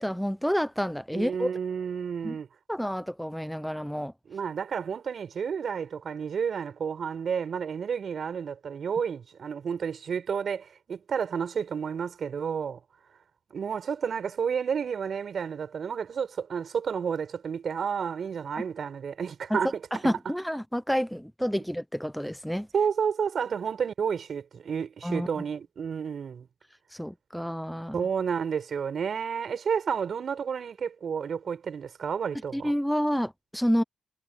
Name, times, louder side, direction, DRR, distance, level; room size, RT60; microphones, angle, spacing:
voice 1, 0.0-1.5 2.2-2.4 2.7-4.1 19.5-19.6 19.9-22.7 25.0-25.3 26.9-28.1 32.5-33.8, equal, ahead, 0.7 m, -29 dB
voice 2, 1.1-2.5 4.3-12.8 13.5-19.7 22.7-26.5 27.9-32.7, right 7 dB, 60° right, 6.8 m, -31 dB
cardioid pair, 80°, 0 cm